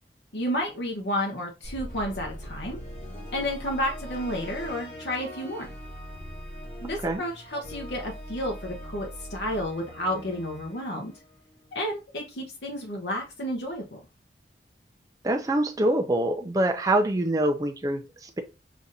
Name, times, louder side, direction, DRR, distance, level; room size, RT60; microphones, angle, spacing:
voice 1, 0.3-2.8 3.3-5.7 6.8-11.1 11.7-14.0, equal, 75° left, 0 dB, 0.8 m, -31 dB
sound 1, 1.6-11.8, equal, 50° left, 1.7 m, -41 dB
voice 2, 15.2-18.4, right 1 dB, 20° right, 3 dB, 0.4 m, -25 dB
6.9 x 2.5 x 2.7 m, 0.28 s
head